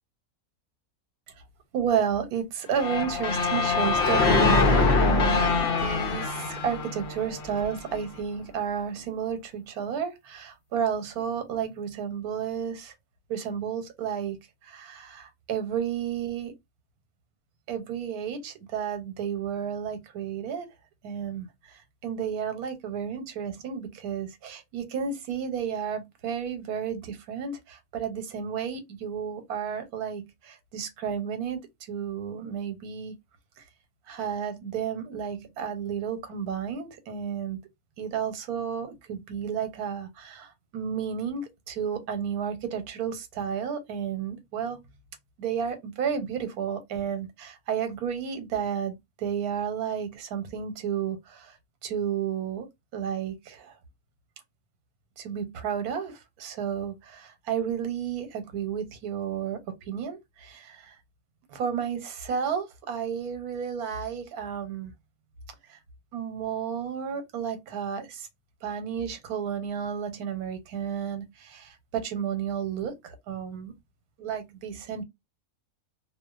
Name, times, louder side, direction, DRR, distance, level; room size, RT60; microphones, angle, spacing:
voice 1, 1.7-12.9 13.3-14.4 14.6-16.5 17.7-20.7 21.0-31.6 31.9-33.2 33.6-33.7 34.1-37.6 38.0-44.8 45.4-51.6 51.8-52.7 52.9-53.7 55.2-61.0 61.5-64.9 65.7-65.8 66.1-68.3 68.6-73.7 74.2-75.0, right 7 dB, 80° right, 1.2 m, -32 dB
sound 1, 2.7-7.8, left 4 dB, 70° left, 0.5 m, -24 dB
2.6 x 2.1 x 2.3 m
omnidirectional pair, 1.6 m